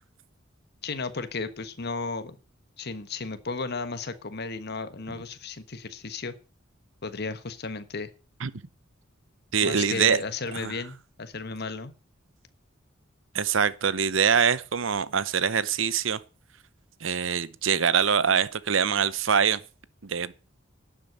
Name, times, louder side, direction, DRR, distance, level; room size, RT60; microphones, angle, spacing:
voice 1, 0.8-2.4 2.8-6.3 7.0-8.1 9.6-11.9, left 4 dB, 55° left, 1.3 m, -34 dB
voice 2, 9.5-10.2 10.5-10.7 13.3-16.2 17.0-19.6 20.0-20.3, right 7 dB, 75° right, 0.8 m, -24 dB
11.5 x 7.6 x 7.9 m
head